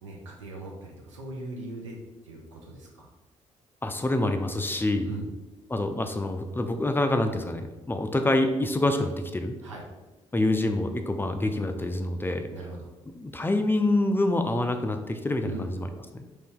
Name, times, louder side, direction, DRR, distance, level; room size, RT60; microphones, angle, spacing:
voice 1, 0.0-2.0 2.2-3.1 5.0-5.3 9.6-9.8 12.5-12.9 15.4-15.7, right 2 dB, 85° right, 0 dB, 0.5 m, -40 dB
voice 2, 3.8-5.1 5.7-9.6 10.3-12.5 13.2-15.9 16.1-16.2, left 2 dB, 15° left, 6 dB, 0.4 m, -26 dB
3.0 x 2.7 x 3.5 m, 1.1 s
figure-of-eight pair, 45°, 16 cm